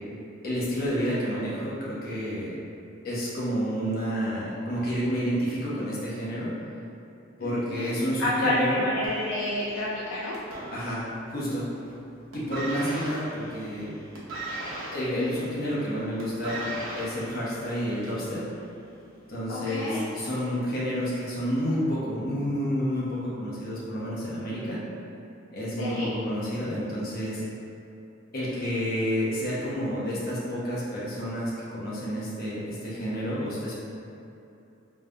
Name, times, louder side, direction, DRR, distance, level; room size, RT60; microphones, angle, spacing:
voice 1, 0.4-2.5 3.0-6.5 7.4-8.8 10.7-11.0 11.3-11.7 12.3-13.9 14.9-18.4 19.3-24.8 25.5-27.4 28.3-33.7, equal, 50° left, -8 dB, 1.1 m, -29 dB
voice 2, 7.4-7.9 8.2-10.4 19.5-20.1 25.8-26.1, left 1 dB, 70° left, -6 dB, 0.5 m, -29 dB
sound 1, 9.0-11.4 11.7-12.0 12.3-18.3 19.1-19.2, right 2 dB, 90° right, 1.0 m, -38 dB
5.1 x 3.3 x 2.2 m, 2.8 s
head